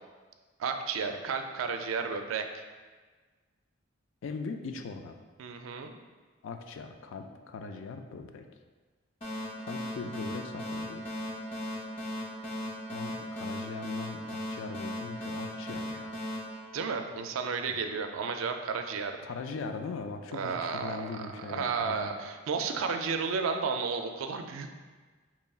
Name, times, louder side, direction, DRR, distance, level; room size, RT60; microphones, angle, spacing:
voice 1, 0.6-2.5 5.4-5.9 16.7-19.2 20.3-24.7, right 5 dB, 90° right, 6 dB, 0.4 m, -32 dB
voice 2, 4.2-5.2 6.4-8.5 9.6-11.0 12.9-16.2 17.7-17.8 19.2-22.2, left 4 dB, 75° left, 6 dB, 0.3 m, -40 dB
sound 1, 9.2-17.5, left 1 dB, 30° left, 0.6 m, -38 dB
5.3 x 2.9 x 2.3 m, 1.4 s
head